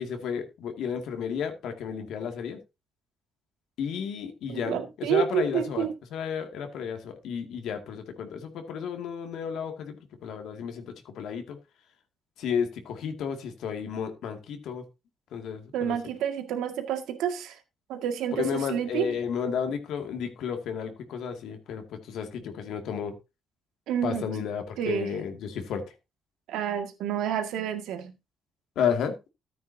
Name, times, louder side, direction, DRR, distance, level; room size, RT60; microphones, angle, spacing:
voice 1, 0.0-2.6 3.8-5.9 6.1-10.0 10.2-11.6 12.4-14.8 15.3-16.0 18.4-23.1 24.0-25.8 28.8-29.2, left 7 dB, 80° left, 2.2 m, -32 dB
voice 2, 4.5-5.9 15.7-17.6 17.9-19.1 23.9-24.3 24.8-25.1 26.5-28.1, right 8 dB, 90° right, 1.9 m, -29 dB
13.5 x 9.2 x 2.8 m
cardioid pair, 90°, 0 cm